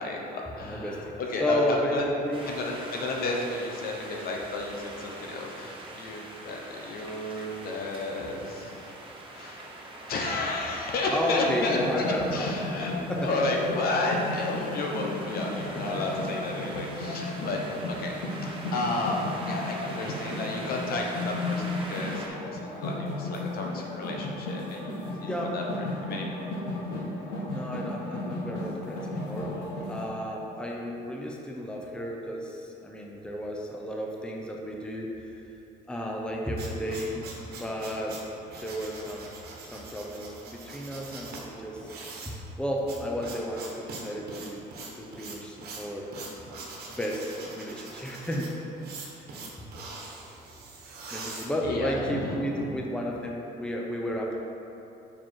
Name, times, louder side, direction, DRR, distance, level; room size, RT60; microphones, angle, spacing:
voice 1, 0.0-2.0 2.4-8.9 9.3-9.6 10.1-12.9 13.2-17.6 18.0-25.6 26.1-26.5 51.1-52.8, left 2 dB, 65° left, 0 dB, 1.0 m, -32 dB
voice 2, 0.6-1.1 1.4-2.0 2.2-2.5 11.1-12.5 13.1-13.3 25.2-25.5 27.5-29.6 29.9-35.4 35.9-37.2 37.5-39.3 39.7-41.9 42.2-44.6 45.0-46.1 46.9-48.5 49.2-49.3 49.6-49.7 51.1-54.4, equal, 5° left, -1 dB, 0.7 m, -33 dB
sound 1, 2.3-22.3, right 2 dB, 30° right, 1.1 m, -43 dB
sound 2, 11.5-30.0, left 2 dB, 80° left, 1.4 m, -34 dB
sound 3, 36.2-52.1, right 3 dB, 65° right, 1.3 m, -43 dB
5.8 x 4.9 x 4.6 m, 2.9 s
cardioid pair, 110°, 17 cm